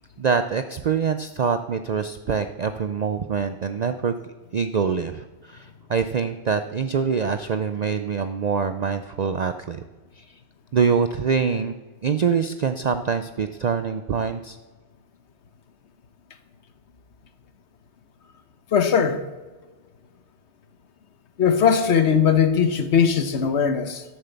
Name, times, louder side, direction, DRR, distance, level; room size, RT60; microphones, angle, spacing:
voice 1, 0.2-9.8 10.2-10.3 10.7-11.7 12.0-14.6, right 6 dB, 60° right, 0.4 m, -25 dB
voice 2, 18.7-19.2 21.4-24.0, left 7 dB, 65° left, 1.2 m, -19 dB
12.5 x 7.8 x 6.9 m
omnidirectional pair, 1.3 m